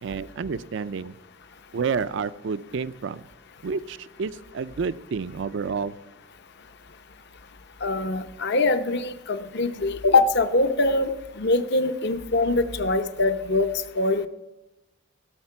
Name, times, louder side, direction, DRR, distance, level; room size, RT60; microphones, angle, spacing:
voice 1, 0.0-1.2 1.7-3.2 3.6-5.9, right 5 dB, 65° right, 15 dB, 0.4 m, -30 dB
voice 2, 7.8-11.1 11.4-13.7 14.0-14.3, left 2 dB, 55° left, 9 dB, 0.8 m, -23 dB
16.0 x 6.6 x 5.7 m, 0.99 s
head